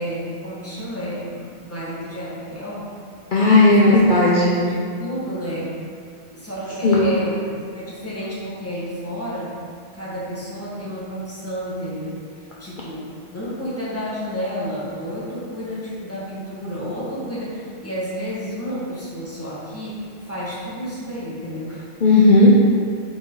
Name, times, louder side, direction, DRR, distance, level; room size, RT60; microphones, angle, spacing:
voice 1, 0.0-2.9 3.6-4.0 4.6-5.8 6.3-9.6 9.9-12.2 12.6-21.9, equal, 15° left, -8 dB, 1.8 m, -31 dB
voice 2, 3.3-4.6 6.8-7.1 22.0-22.6, left 2 dB, 50° left, -5 dB, 0.9 m, -14 dB
7.5 x 5.3 x 3.9 m, 2.3 s
omnidirectional pair, 1.1 m